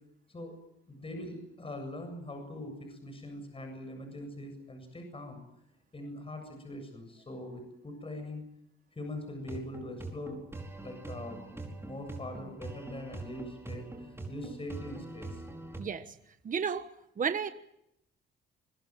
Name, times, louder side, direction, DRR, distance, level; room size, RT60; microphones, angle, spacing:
voice 1, 0.9-5.4 5.9-8.4 8.9-10.4 10.8-15.4, left 1 dB, 30° left, 6 dB, 7.8 m, -42 dB
sound 1, 9.4-15.8, right 2 dB, 10° right, 5.1 m, -43 dB
voice 2, 16.4-16.9 17.2-17.5, right 6 dB, 40° right, 10 dB, 1.4 m, -31 dB
24.5 x 23.5 x 7.7 m, 0.79 s
cardioid pair, 90°, 20 cm